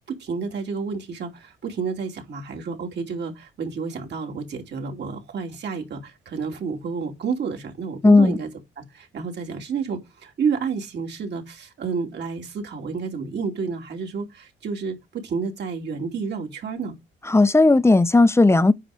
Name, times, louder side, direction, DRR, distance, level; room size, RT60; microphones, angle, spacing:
voice 1, 0.1-8.5 8.8-17.0, right 5 dB, 60° right, 2.8 m, -30 dB
voice 2, 8.0-8.4 17.3-18.7, left 3 dB, 15° left, 0.7 m, -15 dB
9.2 x 5.0 x 5.0 m
cardioid pair, 90°, 20 cm